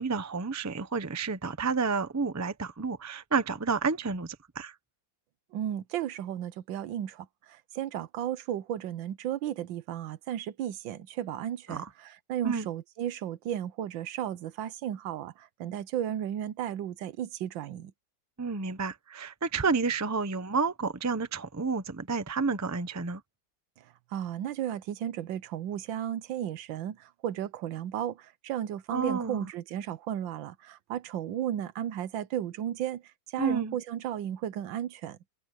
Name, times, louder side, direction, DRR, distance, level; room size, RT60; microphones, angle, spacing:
voice 1, 0.0-4.7 11.7-11.9 12.4-12.7 18.4-23.2 28.9-29.5 33.4-33.8, right 4 dB, 25° right, 0.3 m, -30 dB
voice 2, 5.5-17.9 24.1-33.0 33.3-35.2, right 10 dB, 75° right, 1.5 m, -34 dB
open air
omnidirectional pair, 2.1 m